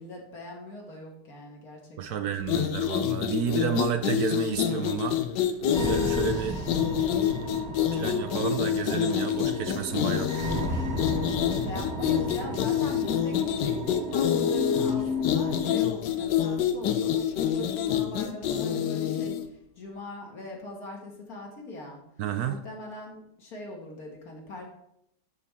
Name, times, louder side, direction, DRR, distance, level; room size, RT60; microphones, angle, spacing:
voice 1, 0.0-2.3 11.6-22.0 22.4-24.7, left 2 dB, 60° left, 0 dB, 2.0 m, -41 dB
voice 2, 2.0-5.2 5.8-6.6 7.9-10.3 22.2-22.6, right 8 dB, 70° right, 7 dB, 1.0 m, -31 dB
sound 1, 2.4-19.5, left 9 dB, 90° left, 1.3 m, -27 dB
sound 2, 5.7-15.8, equal, 40° right, 1.3 m, -34 dB
11.0 x 4.2 x 3.5 m, 0.77 s
omnidirectional pair, 1.8 m